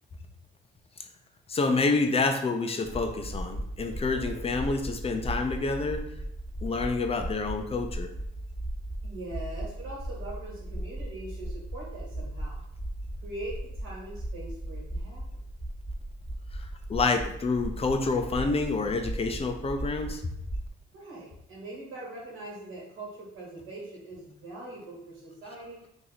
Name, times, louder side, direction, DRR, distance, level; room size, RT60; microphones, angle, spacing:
voice 1, 1.5-6.0 6.6-8.1 16.9-20.2, left 3 dB, 30° left, 6 dB, 0.6 m, -28 dB
sound 1, 2.8-20.7, right 1 dB, 15° right, 0.9 m, -37 dB
voice 2, 9.0-12.6 13.2-15.2 20.9-25.8, right 2 dB, 90° right, -3 dB, 1.5 m, -42 dB
3.0 x 2.6 x 4.0 m, 0.79 s
cardioid pair, 90°, 20 cm